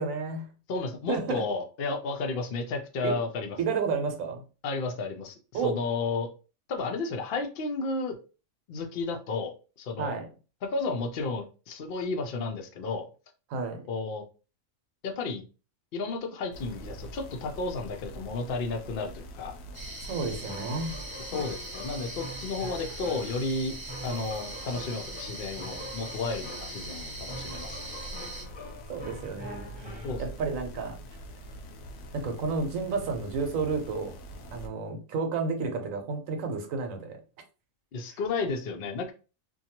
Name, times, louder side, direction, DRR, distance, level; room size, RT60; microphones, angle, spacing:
voice 1, 0.0-0.5 1.1-1.5 3.0-3.3 3.6-4.4 5.5-5.8 10.0-10.3 13.5-13.9 20.0-21.0 28.9-31.0 32.1-34.2 34.5-37.2 38.1-38.2, right 4 dB, 75° right, 1.0 m, -31 dB
voice 2, 0.7-3.6 4.6-6.3 6.7-8.2 8.7-10.2 10.6-13.1 13.9-14.2 15.0-15.5 15.9-19.6 21.3-23.7 24.0-27.9 30.0-30.2 37.9-39.1, left 3 dB, 60° left, 0.6 m, -32 dB
sound 1, 16.5-34.7, right 1 dB, 80° left, 1.0 m, -44 dB
sound 2, 19.7-28.4, right 2 dB, 30° right, 0.4 m, -41 dB
sound 3, 20.1-30.7, left 1 dB, 25° left, 0.7 m, -44 dB
2.6 x 2.2 x 2.8 m
omnidirectional pair, 1.4 m